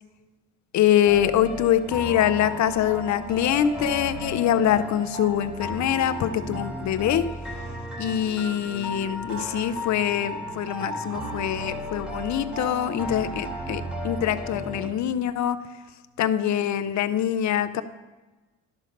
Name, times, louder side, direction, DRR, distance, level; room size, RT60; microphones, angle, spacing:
voice 1, 0.7-7.2 8.0-15.6 16.2-17.8, left 10 dB, 65° left, 11 dB, 0.7 m, -24 dB
sound 1, 1.0-14.9, equal, 5° right, 2.6 m, -34 dB
11.5 x 5.3 x 6.5 m, 1.2 s
cardioid pair, 90°, 30 cm